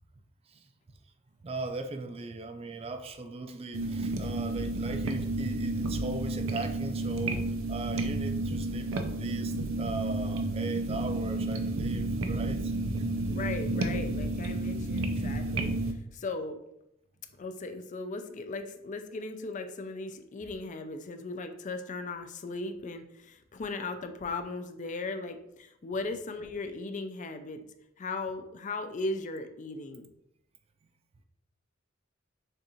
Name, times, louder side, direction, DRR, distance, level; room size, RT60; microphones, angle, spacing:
voice 1, 1.4-13.1 15.2-15.3, right 3 dB, 30° right, 0.4 m, -39 dB
sound 1, 3.7-15.9, right 2 dB, 85° right, 0.5 m, -31 dB
voice 2, 13.3-16.6 17.4-27.6 28.0-30.1, left 3 dB, 40° left, 0.4 m, -37 dB
6.7 x 2.5 x 3.0 m
head